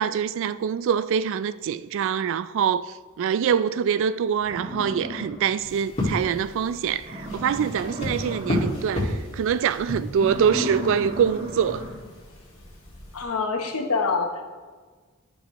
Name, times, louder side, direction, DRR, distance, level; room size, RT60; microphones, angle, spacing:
voice 1, 0.0-11.8, right 7 dB, 65° right, 0.3 m, -24 dB
sound 1, 3.9-4.0 4.4-5.8 6.2-6.3 6.7-6.8 7.0-8.9 9.2-9.6 10.1-12.1, equal, 30° right, 1.6 m, -35 dB
sound 2, 5.6-13.2, left 1 dB, 30° left, 2.0 m, -33 dB
voice 2, 13.1-14.5, left 4 dB, 90° left, 1.0 m, -26 dB
12.0 x 5.3 x 3.0 m
head